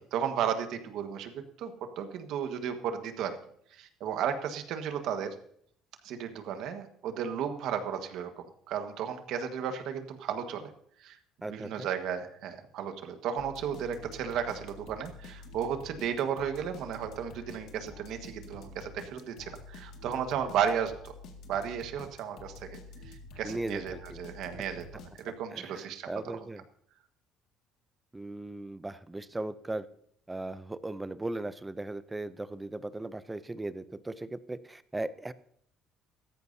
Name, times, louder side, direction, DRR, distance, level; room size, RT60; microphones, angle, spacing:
voice 1, 0.1-3.4 3.7-5.3 6.0-10.7 11.0-11.2 11.5-21.1 21.5-22.8 23.0-24.8 25.1-26.1, right 8 dB, 65° right, 7 dB, 1.4 m, -34 dB
voice 2, 11.4-11.9 23.4-24.2 25.5-26.6 28.1-29.9 30.3-35.3, right 2 dB, 10° right, 16 dB, 0.4 m, -38 dB
sound 1, 13.4-25.6, left 3 dB, 65° left, 1.9 m, -48 dB
16.0 x 14.0 x 2.7 m, 0.66 s
cardioid pair, 155°, 0 cm